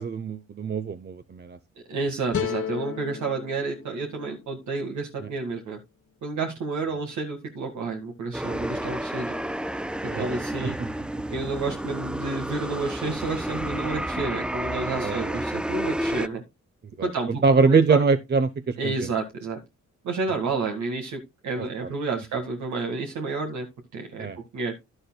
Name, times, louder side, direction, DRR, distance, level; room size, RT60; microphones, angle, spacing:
voice 1, 0.0-1.6 5.2-5.3 10.1-10.3 15.0-15.3 17.0-17.1 17.4-18.9 24.2-24.4, right 4 dB, 35° right, 0.9 m, -23 dB
voice 2, 1.9-5.8 6.2-9.3 10.1-10.8 11.3-16.4 17.0-18.0 18.8-19.6 20.0-23.7 23.9-24.3 24.5-24.7, right 3 dB, 75° right, 2.0 m, -30 dB
sound 1, 2.3-5.5, left 8 dB, 50° left, 1.3 m, -35 dB
sound 2, 8.3-16.3, right 1 dB, 5° right, 0.5 m, -31 dB
11.0 x 11.0 x 2.3 m
cardioid pair, 85°, 30 cm